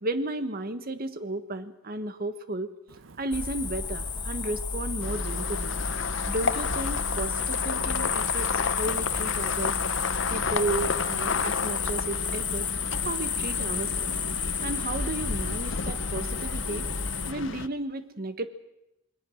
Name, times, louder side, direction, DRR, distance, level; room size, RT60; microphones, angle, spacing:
voice 1, 0.0-2.7 3.2-5.7 6.2-9.8 10.3-12.7 13.0-14.1 14.6-16.9 17.3-18.5, right 2 dB, 50° right, 11 dB, 1.3 m, -33 dB
Wind, 2.9-17.6, right 4 dB, 90° right, 1.0 m, -51 dB
sound 1, 3.3-17.3, left 5 dB, 25° left, 0.8 m, -31 dB
sound 2, 5.0-17.7, left 5 dB, 65° left, 0.8 m, -32 dB
27.5 x 21.0 x 6.4 m, 0.90 s
head